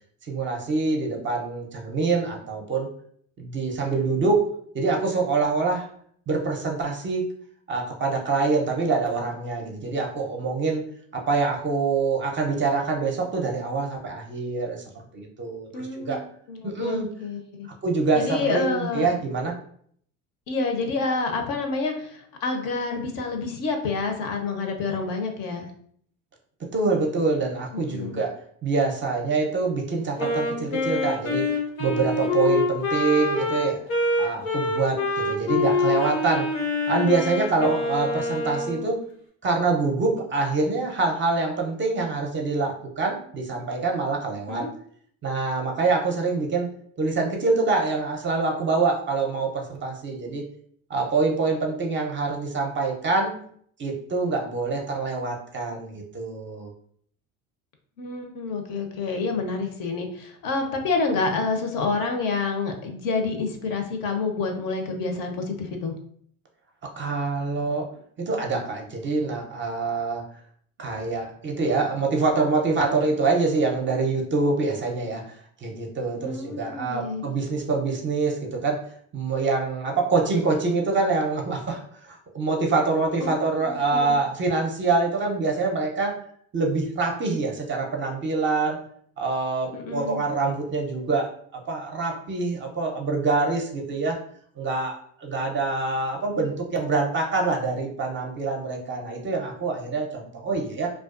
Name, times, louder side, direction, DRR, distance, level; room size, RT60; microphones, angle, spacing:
voice 1, 0.3-2.9 3.4-4.5 4.7-5.9 6.3-7.3 7.7-10.8 11.1-14.8 15.1-16.2 16.6-17.1 17.7-19.6 26.7-28.3 28.6-31.5 31.8-33.8 34.2-36.5 36.9-39.0 39.4-44.7 45.2-46.7 47.0-50.4 50.9-53.4 53.8-56.7 67.0-67.9 68.2-70.2 70.8-78.9 79.1-86.2 86.5-88.8 89.2-94.2 94.6-100.9, right 3 dB, 30° right, 1 dB, 0.5 m, -25 dB
voice 2, 15.7-17.7 18.1-19.1 20.5-25.7 27.7-28.2 44.5-44.7 58.0-65.9 76.2-77.4 83.2-84.2 89.7-90.2, left 3 dB, 55° left, 4 dB, 0.6 m, -28 dB
Wind instrument woodwind instrument, 30.2-38.8, left 2 dB, 90° left, 1.0 m, -25 dB
2.3 x 2.2 x 2.4 m, 0.63 s
supercardioid pair, 80°, 41 cm